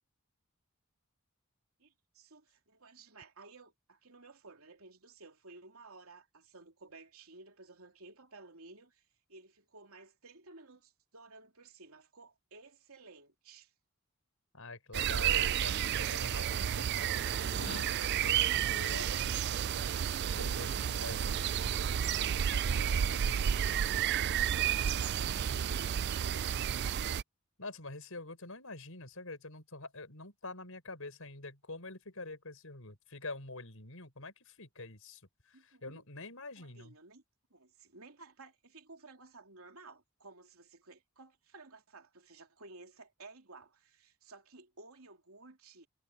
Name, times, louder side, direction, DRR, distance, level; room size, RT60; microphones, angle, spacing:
voice 1, 1.8-13.7 22.8-26.7 35.5-36.0 36.6-37.2 37.5-45.9, right 3 dB, 80° right, 3.0 m, -55 dB
voice 2, 14.5-23.4 27.6-36.9, left 2 dB, 70° left, 5.7 m, -47 dB
sound 1, 14.9-27.2, right 9 dB, 50° right, 0.3 m, -31 dB
sound 2, 17.4-19.4, left 3 dB, 90° left, 1.2 m, -49 dB
head